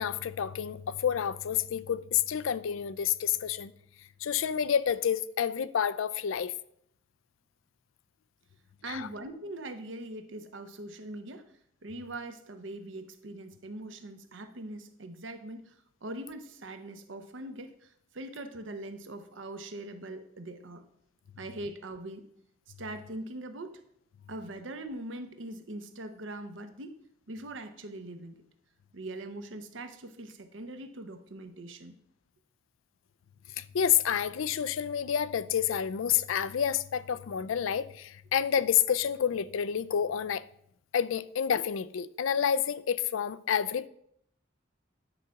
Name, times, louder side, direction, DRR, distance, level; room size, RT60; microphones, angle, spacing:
voice 1, 0.0-3.7 4.2-6.5 8.9-9.1 33.6-40.4 40.9-43.9, left 8 dB, 90° left, 0.4 m, -29 dB
voice 2, 8.8-11.5 11.8-20.8 21.4-22.2 22.8-23.8 24.3-27.0 27.3-28.4 28.9-32.0, right 1 dB, 70° right, 0.8 m, -42 dB
9.8 x 3.7 x 5.8 m
head